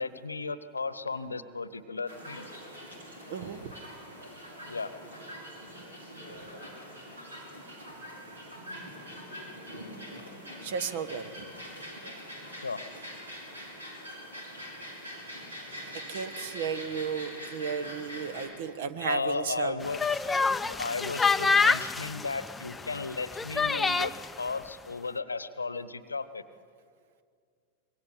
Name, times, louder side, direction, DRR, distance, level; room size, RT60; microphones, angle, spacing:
voice 1, 0.0-2.5 4.7-4.9 12.6-12.8 19.0-20.1 20.5-26.4, left 4 dB, 80° left, 15 dB, 1.0 m, -35 dB
sound 1, 2.1-18.5, equal, 75° right, 5.3 m, -44 dB
voice 2, 3.3-3.7 10.6-11.4 16.1-19.8, right 6 dB, 55° right, 13 dB, 1.4 m, -34 dB
sound 2, 19.8-24.3, left 4 dB, 10° left, 0.6 m, -27 dB
25.0 x 22.5 x 8.0 m, 2.2 s
figure-of-eight pair, 90°, 0 cm